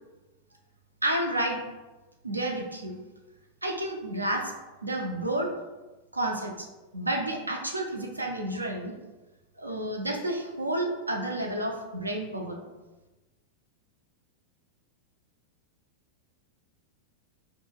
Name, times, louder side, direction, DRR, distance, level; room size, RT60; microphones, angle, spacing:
voice 1, 1.0-1.6 2.2-3.0 3.6-4.5 4.8-5.5 6.1-6.7 6.9-8.9 9.6-12.6, right 1 dB, 85° right, 1 dB, 0.4 m, -30 dB
2.2 x 2.1 x 3.2 m, 1.1 s
figure-of-eight pair, 90°, 0 cm